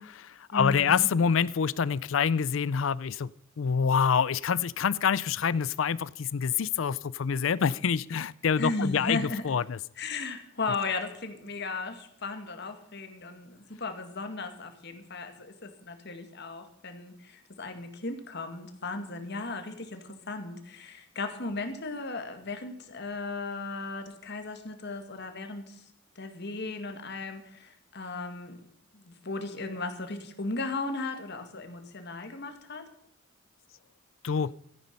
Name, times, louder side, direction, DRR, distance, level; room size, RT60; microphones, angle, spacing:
voice 1, 0.0-3.3 3.6-9.2 9.4-9.8 34.2-34.5, left 6 dB, 90° left, 19 dB, 0.5 m, -26 dB
voice 2, 0.5-1.1 8.6-9.5 10.0-25.8 26.2-28.6 28.9-32.9, left 3 dB, 60° left, 7 dB, 2.1 m, -36 dB
14.0 x 10.5 x 5.4 m, 0.71 s
head